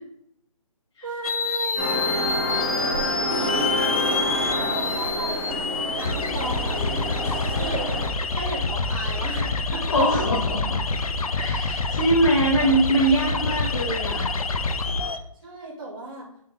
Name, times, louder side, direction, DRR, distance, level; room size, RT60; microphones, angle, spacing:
voice 1, 1.0-2.9 3.2-6.8 7.5-7.9 8.3-9.8 11.8-12.8 15.4-16.3, right 2 dB, 35° right, -6 dB, 1.9 m, -35 dB
sound 1, 1.2-15.2, left 3 dB, 75° left, 0.8 m, -27 dB
sound 2, 1.8-8.1, equal, 10° left, 1.5 m, -28 dB
voice 2, 9.9-10.8 11.3-14.2, right 1 dB, 55° left, -3 dB, 1.4 m, -22 dB
6.9 x 4.1 x 3.2 m, 0.73 s
hypercardioid pair, 170°, 19 cm